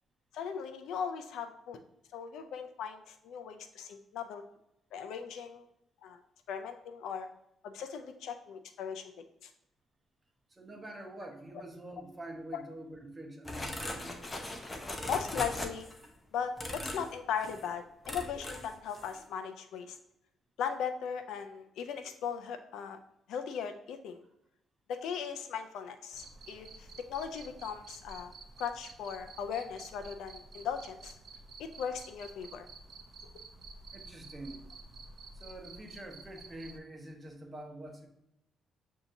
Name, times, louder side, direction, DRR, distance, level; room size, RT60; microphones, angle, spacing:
voice 1, 0.3-1.8 2.1-4.4 4.9-5.6 6.0-6.2 6.5-7.3 7.6-9.5 12.5-12.6 15.1-15.9 16.3-20.0 20.6-23.0 23.3-24.2 24.9-28.3 28.6-31.2 31.8-32.7, left 7 dB, 80° left, 7 dB, 0.3 m, -38 dB
voice 2, 10.5-14.3 33.9-34.6 35.3-38.1, right 1 dB, 25° right, 3 dB, 0.9 m, -46 dB
sound 1, 13.4-16.1 16.6-17.1 17.4-17.7 18.0-18.7 18.9-19.2, left 1 dB, 20° left, 0.7 m, -39 dB
Cricket, 26.1-36.8, right 3 dB, 45° right, 0.5 m, -51 dB
6.9 x 2.7 x 2.6 m, 0.81 s
cardioid pair, 90°, 0 cm